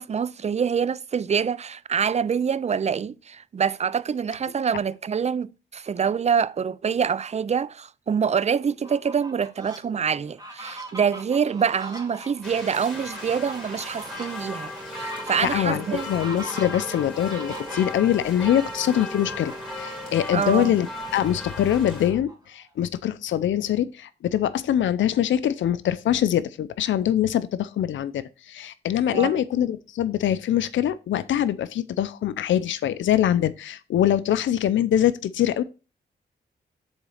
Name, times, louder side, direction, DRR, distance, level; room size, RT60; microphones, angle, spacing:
voice 1, 0.0-16.1 20.3-20.7 29.1-29.4, right 7 dB, 35° right, 0.4 m, -26 dB
Fowl, 8.7-9.8 10.3-18.0 19.0-20.1 20.5-20.6 21.0-22.7, right 1 dB, 20° right, 2.3 m, -42 dB
sound 1, 12.4-22.1, left 1 dB, 5° left, 3.2 m, -36 dB
voice 2, 15.4-20.9 21.1-35.6, left 11 dB, 80° left, 0.5 m, -23 dB
7.1 x 4.0 x 6.3 m
cardioid pair, 65°, 19 cm